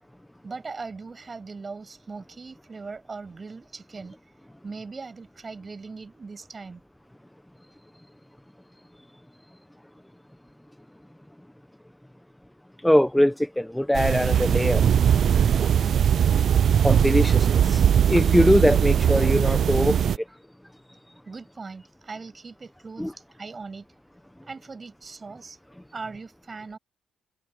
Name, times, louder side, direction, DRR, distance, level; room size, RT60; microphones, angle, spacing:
voice 1, 0.4-4.2 4.6-6.8 21.2-23.9 24.4-25.6 25.9-26.8, right 4 dB, 30° right, 6.8 m, -39 dB
voice 2, 12.8-14.9 16.8-20.0 23.0-23.1, left 1 dB, 5° left, 0.9 m, -22 dB
sound 1, 13.9-20.2, right 8 dB, 60° right, 0.5 m, -20 dB
cardioid pair, 90°, 0 cm